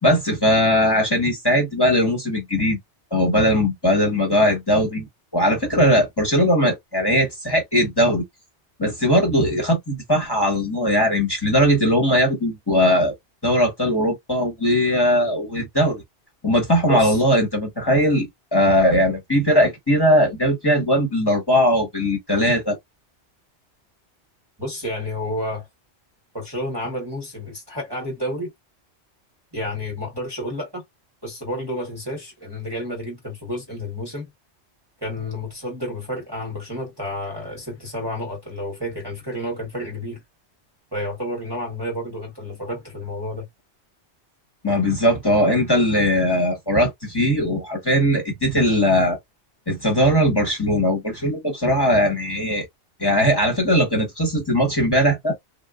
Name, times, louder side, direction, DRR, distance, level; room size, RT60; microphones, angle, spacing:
voice 1, 0.0-2.8 3.1-5.1 5.3-8.2 8.8-13.1 13.4-16.0 16.4-22.8 44.6-49.2 49.7-52.6 53.0-55.3, equal, 20° left, 1.3 m, -19 dB
voice 2, 16.9-17.2 24.6-25.7 26.3-28.5 29.5-30.8 31.2-34.3 35.0-40.2 40.9-43.5, left 1 dB, 20° right, 1.1 m, -30 dB
3.6 x 2.4 x 2.4 m
omnidirectional pair, 1.2 m